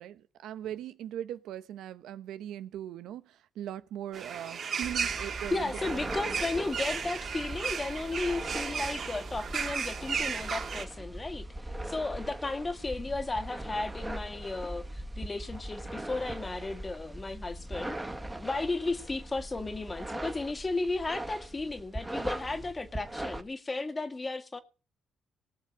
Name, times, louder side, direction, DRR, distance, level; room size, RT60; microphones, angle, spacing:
voice 1, 0.0-6.5, right 11 dB, 85° right, 1.0 m, -40 dB
sound 1, 4.1-10.9, right 6 dB, 55° right, 3.4 m, -35 dB
sound 2, 4.8-23.4, right 1 dB, 10° right, 2.1 m, -40 dB
voice 2, 5.5-11.4 11.8-24.6, left 3 dB, 25° left, 2.1 m, -34 dB
19.0 x 6.9 x 7.5 m
cardioid pair, 90°, 0 cm